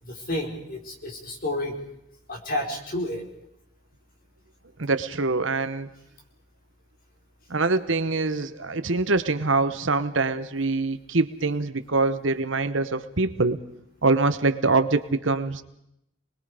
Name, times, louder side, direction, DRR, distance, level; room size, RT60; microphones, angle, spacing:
voice 1, 0.0-1.8 2.3-3.2 8.6-8.7 11.9-12.0, left 1 dB, 45° left, 1 dB, 4.8 m, -31 dB
voice 2, 4.8-5.9 7.5-13.6 14.0-15.6, right 3 dB, 65° right, 12 dB, 1.2 m, -24 dB
29.0 x 21.0 x 5.1 m, 0.78 s
head